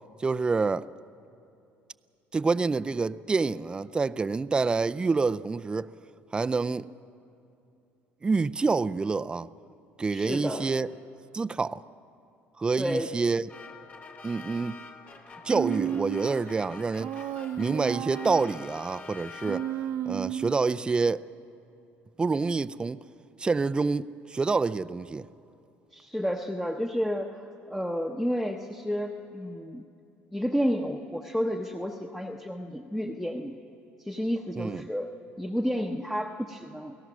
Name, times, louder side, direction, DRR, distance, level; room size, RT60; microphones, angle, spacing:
voice 1, 0.2-0.9 2.3-5.9 6.3-6.9 8.2-9.5 10.0-10.9 11.3-11.8 12.6-13.4 14.2-14.8 15.4-17.1 17.6-19.6 20.1-21.2 22.2-23.0 23.4-25.3 34.6-34.8, right 4 dB, 20° right, 0.4 m, -27 dB
voice 2, 10.1-10.7 12.8-13.1 25.9-29.8 30.3-33.6 34.0-35.1 35.4-37.0, equal, 5° left, 0.9 m, -31 dB
sound 1, 13.5-20.0, left 4 dB, 40° left, 2.3 m, -46 dB
Human voice, 15.5-16.4 17.0-18.6 19.4-20.7, right 11 dB, 65° right, 0.6 m, -33 dB
29.0 x 17.0 x 6.1 m
cardioid pair, 100°, 5 cm